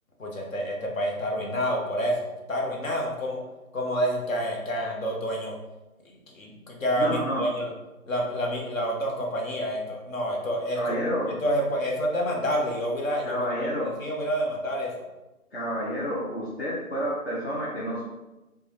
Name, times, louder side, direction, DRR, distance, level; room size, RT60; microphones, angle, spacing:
voice 1, 0.2-3.4 3.7-5.5 6.3-7.7 8.1-11.0 11.4-13.6 14.0-15.0, equal, 65° left, -1 dB, 0.9 m, -28 dB
voice 2, 7.0-7.4 10.7-11.4 13.2-13.9 15.5-18.0, equal, 45° left, -6 dB, 0.6 m, -29 dB
3.4 x 2.2 x 3.0 m, 1.0 s
hypercardioid pair, 175°, 44 cm